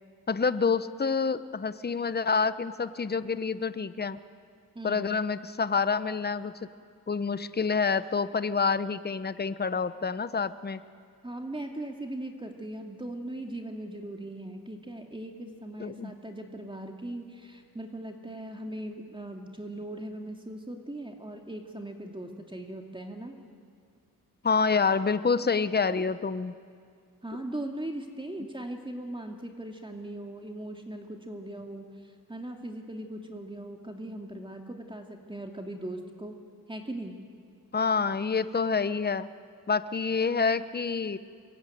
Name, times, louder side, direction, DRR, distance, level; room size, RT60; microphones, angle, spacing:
voice 1, 0.3-4.2 4.8-6.5 7.1-10.8 15.8-16.1 24.4-26.5 37.7-39.3 39.7-41.2, left 5 dB, 25° left, 13 dB, 1.0 m, -27 dB
voice 2, 4.7-5.1 11.2-23.4 27.2-36.4 36.7-37.2, right 1 dB, 15° right, 3 dB, 2.5 m, -39 dB
26.5 x 22.0 x 9.4 m, 2.2 s
cardioid pair, 70°, 36 cm